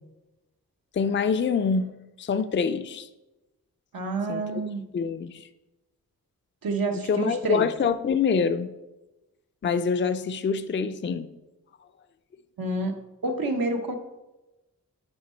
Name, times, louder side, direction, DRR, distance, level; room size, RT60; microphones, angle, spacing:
voice 1, 0.9-3.1 4.3-4.4 4.9-5.4 7.0-8.7 9.6-11.3, left 6 dB, 35° left, 10 dB, 0.4 m, -25 dB
voice 2, 3.9-4.8 6.6-7.7 12.6-13.9, right 2 dB, 80° right, 4 dB, 1.0 m, -28 dB
8.7 x 4.7 x 4.3 m, 1.0 s
cardioid pair, 60°, 34 cm